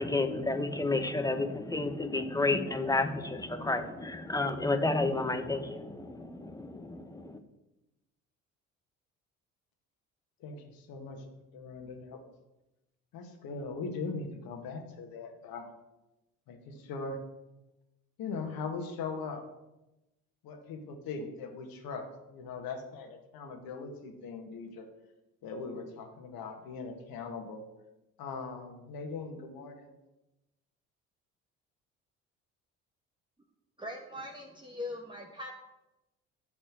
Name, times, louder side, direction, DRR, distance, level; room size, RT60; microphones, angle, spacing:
voice 1, 0.0-7.4, left 2 dB, 10° left, 7 dB, 1.3 m, -31 dB
voice 2, 10.4-12.2 13.1-15.7 16.5-17.2 18.2-19.4 20.4-24.9 25.4-27.6 28.2-29.9, left 4 dB, 60° left, 4 dB, 1.9 m, -40 dB
voice 3, 33.8-35.5, left 2 dB, 10° right, 0 dB, 1.4 m, -41 dB
11.0 x 4.3 x 7.6 m, 0.97 s
hypercardioid pair, 55°, 39 cm